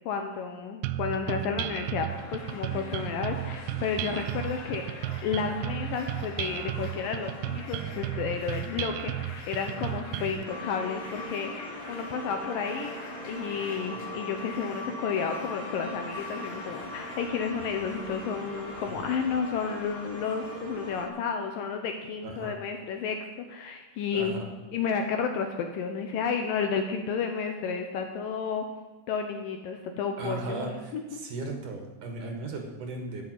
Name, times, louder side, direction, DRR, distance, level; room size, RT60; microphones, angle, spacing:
voice 1, 0.1-24.4 24.7-28.7 29.1-31.2, left 6 dB, 75° left, 5 dB, 2.2 m, -32 dB
sound 1, 0.8-10.4, right 13 dB, 80° right, 2.4 m, -34 dB
sound 2, 2.1-21.2, left 3 dB, 50° left, 2.4 m, -45 dB
sound 3, 10.4-21.1, left 1 dB, 30° right, 0.9 m, -40 dB
voice 2, 22.2-22.5 24.1-24.5 30.2-33.3, right 2 dB, 60° right, 3 dB, 2.8 m, -37 dB
11.5 x 7.6 x 9.0 m, 1.3 s
omnidirectional pair, 4.7 m